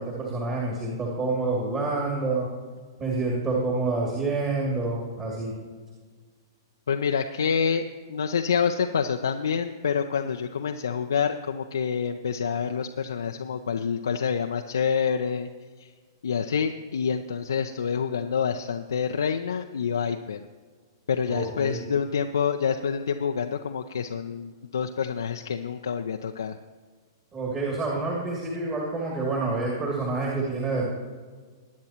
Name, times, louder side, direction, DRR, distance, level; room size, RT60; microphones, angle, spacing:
voice 1, 0.0-2.5 3.0-5.6 21.3-21.8 27.3-30.9, right 3 dB, 25° right, -3 dB, 2.5 m, -28 dB
voice 2, 6.9-15.5 15.8-15.9 16.2-20.4 21.1-26.6, left 6 dB, 75° left, 5 dB, 0.5 m, -27 dB
21.0 x 9.5 x 2.9 m, 1.5 s
figure-of-eight pair, 110°, 2 cm